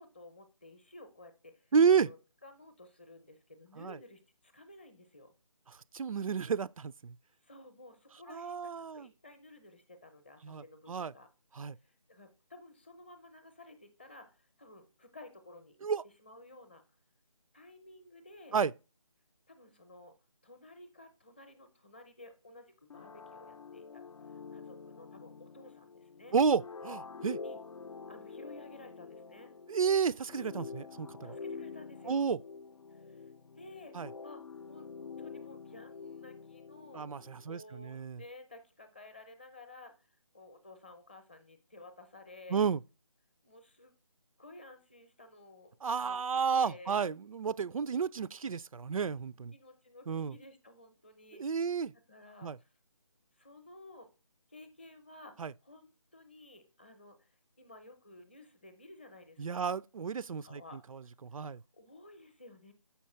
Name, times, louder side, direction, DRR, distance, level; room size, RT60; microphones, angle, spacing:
voice 1, 0.0-2.2 2.4-5.3 7.4-11.3 11.8-16.8 17.5-18.6 19.5-20.1 20.4-24.0 24.5-26.4 27.4-27.6 28.1-29.5 31.2-32.3 32.9-33.2 33.5-34.4 34.7-34.9 35.2-37.1 37.5-40.1 40.3-42.7 43.4-43.9 44.4-47.0 49.5-51.7 52.1-52.7 53.4-54.1 54.5-59.7 60.4-61.1 61.7-62.7, left 2 dB, 20° left, 0.7 m, -54 dB
voice 2, 1.7-2.1 3.8-4.0 5.9-7.1 8.3-9.1 10.4-11.1 11.5-11.8 15.8-16.0 18.5-18.7 26.3-27.4 29.7-31.4 32.1-32.4 33.9-34.1 36.9-38.2 42.5-42.8 45.8-49.5 50.1-50.3 51.3-51.9 52.4-52.6 55.4-55.5 59.4-60.6 60.9-61.6, right 6 dB, 80° right, 0.4 m, -31 dB
sound 1, 22.9-37.4, left 5 dB, 70° left, 0.6 m, -47 dB
7.2 x 5.7 x 4.3 m
figure-of-eight pair, 170°, 17 cm